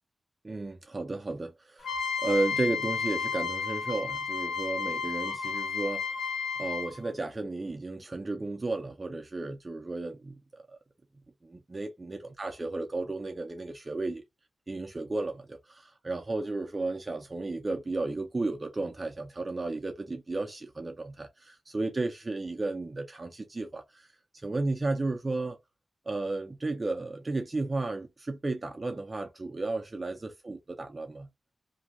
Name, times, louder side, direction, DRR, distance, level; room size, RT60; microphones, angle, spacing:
voice 1, 0.4-6.3 6.6-10.8 11.4-14.2 14.7-24.1 24.3-25.6 26.1-31.3, right 2 dB, 30° right, 0.4 m, -33 dB
sound 1, 1.8-7.1, left 5 dB, 85° left, 0.7 m, -32 dB
2.5 x 2.2 x 2.5 m
wide cardioid pair, 160°, 0 cm